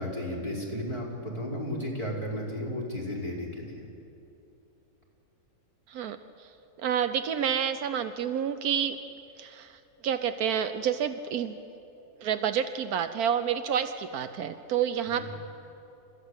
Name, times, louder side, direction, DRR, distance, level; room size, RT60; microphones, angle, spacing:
voice 1, 0.0-3.8 15.2-15.3, left 1 dB, 20° right, -4 dB, 4.9 m, -34 dB
voice 2, 6.8-9.0 9.4-9.7 10.0-11.5 12.2-15.3, right 8 dB, 85° right, 10 dB, 1.3 m, -29 dB
30.0 x 15.0 x 8.2 m, 2.9 s
omnidirectional pair, 1.6 m